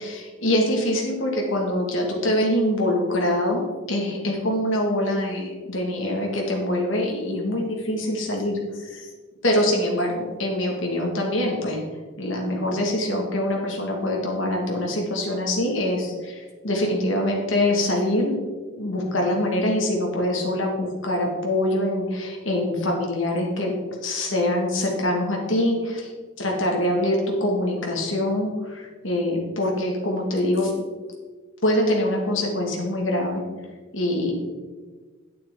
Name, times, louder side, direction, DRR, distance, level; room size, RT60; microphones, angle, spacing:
voice 1, 0.0-9.1 9.4-11.8 12.2-18.4 18.7-23.7 24.0-26.1 26.4-30.7 31.6-33.4 33.9-34.3, left 1 dB, 65° left, 0 dB, 2.1 m, -24 dB
9.8 x 8.5 x 3.9 m, 1.4 s
head